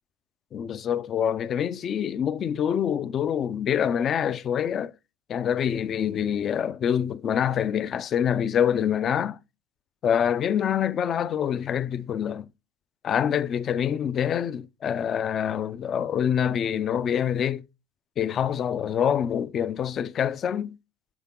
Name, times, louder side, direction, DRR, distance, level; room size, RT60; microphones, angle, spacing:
voice 1, 0.5-4.9 5.3-9.4 10.0-12.5 13.0-17.6 18.2-20.8, left 8 dB, 35° left, 0.4 m, -26 dB
9.9 x 3.6 x 3.8 m
supercardioid pair, 130°, 0 cm